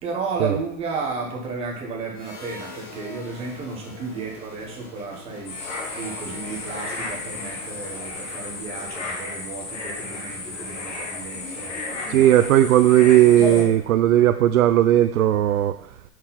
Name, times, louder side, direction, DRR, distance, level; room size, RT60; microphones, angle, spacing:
voice 1, 0.0-12.2, right 4 dB, 15° right, -1 dB, 1.1 m, -33 dB
sound 1, 2.1-8.7, left 3 dB, 35° left, 1.7 m, -42 dB
sound 2, 5.4-13.6, left 3 dB, 50° left, 2.3 m, -33 dB
voice 2, 12.1-15.8, right 12 dB, 65° right, 8 dB, 0.5 m, -16 dB
6.3 x 6.0 x 4.1 m, 0.64 s
hypercardioid pair, 160°, 45 cm